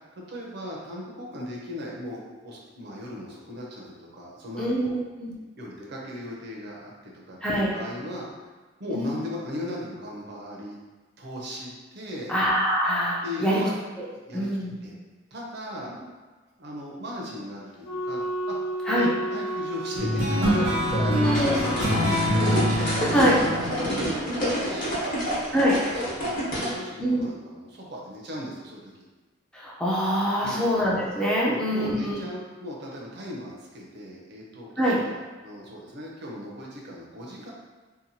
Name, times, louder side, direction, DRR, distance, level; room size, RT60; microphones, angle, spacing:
voice 1, 0.3-4.9 5.6-8.3 8.8-10.8 11.2-12.3 13.2-13.7 14.3-14.5 14.8-15.0 15.3-15.9 16.6-18.2 18.5-18.6 18.8-24.2 24.6-29.1 30.4-30.7 31.4-37.5, left 1 dB, 60° right, -3 dB, 0.6 m, -37 dB
voice 2, 4.6-5.3 7.4-7.8 8.9-9.1 12.3-13.6 14.0-14.1 14.3-14.7 18.9-19.1 21.1-21.6 23.1-23.4 25.5-25.8 27.0-27.2 29.5-32.1 34.8-35.0, equal, 5° left, -6 dB, 0.4 m, -24 dB
Wind instrument woodwind instrument, 17.8-22.1, right 1 dB, 90° left, 0.7 m, -32 dB
sound 1, 20.0-24.9, equal, 85° right, 0.9 m, -26 dB
sound 2, 21.2-26.7, equal, 45° left, 0.9 m, -28 dB
2.8 x 2.2 x 2.6 m, 1.3 s
head